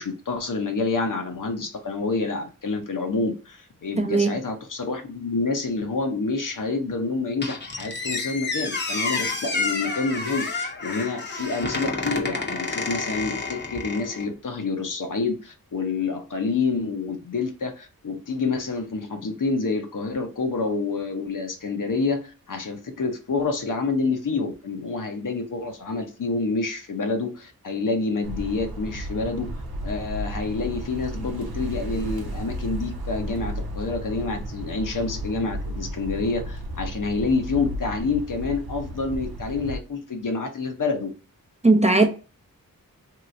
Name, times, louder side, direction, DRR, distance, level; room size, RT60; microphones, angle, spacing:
voice 1, 0.0-29.5 29.8-41.1, left 4 dB, 60° left, 0.8 m, -28 dB
voice 2, 4.0-4.4 41.6-42.1, right 2 dB, 20° right, 0.5 m, -18 dB
Squeak, 7.4-14.3, left 3 dB, 30° left, 0.8 m, -29 dB
sound 1, 28.2-39.8, equal, 80° right, 0.8 m, -33 dB
3.0 x 2.9 x 2.5 m
cardioid pair, 50°, 36 cm